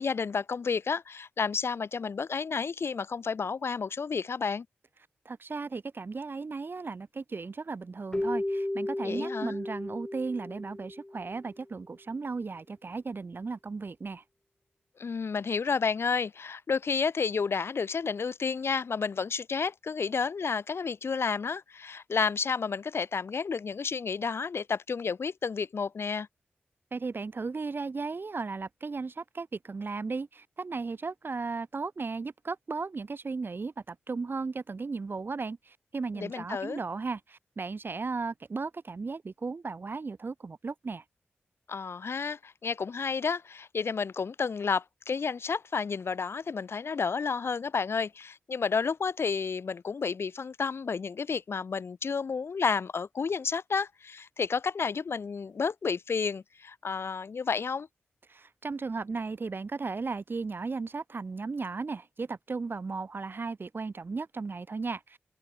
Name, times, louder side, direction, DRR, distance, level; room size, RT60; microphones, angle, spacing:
voice 1, 0.0-4.7 9.0-9.6 15.0-26.3 36.2-36.8 41.7-57.9, left 5 dB, 65° left, 2.1 m, -31 dB
voice 2, 5.2-14.2 26.9-41.0 58.3-65.2, right 4 dB, 50° right, 2.6 m, -35 dB
Keyboard (musical), 8.1-11.4, left 1 dB, 15° left, 1.1 m, -34 dB
open air
cardioid pair, 50°, 4 cm